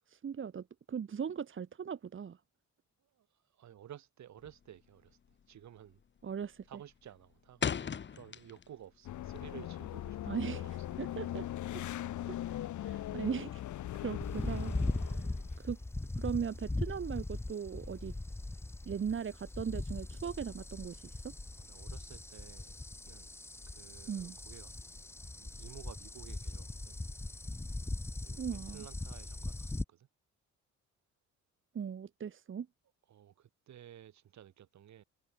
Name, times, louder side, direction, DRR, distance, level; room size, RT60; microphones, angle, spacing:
voice 1, 0.1-2.4 6.2-6.7 10.3-11.5 11.7-11.8 12.3-13.6 13.9-15.2 15.6-15.8 16.2-18.1 18.9-21.3 24.1-24.4 28.4-28.9 31.7-32.7, right 7 dB, 40° right, 1.6 m, -39 dB
voice 2, 3.0-5.2 5.5-6.0 6.7-10.7 21.5-22.8 23.0-23.4 23.7-27.1 28.2-30.1 33.1-35.0, right 10 dB, 65° right, 3.9 m, -54 dB
sound 1, 4.4-4.8 5.1-5.4 5.8-6.2 6.5-8.9 9.2-10.6, left 7 dB, 40° left, 1.2 m, -38 dB
sound 2, 9.0-15.6, left 12 dB, 75° left, 2.3 m, -40 dB
sound 3, 14.2-29.8, left 2 dB, 10° left, 0.7 m, -40 dB
cardioid pair, 90°, 30 cm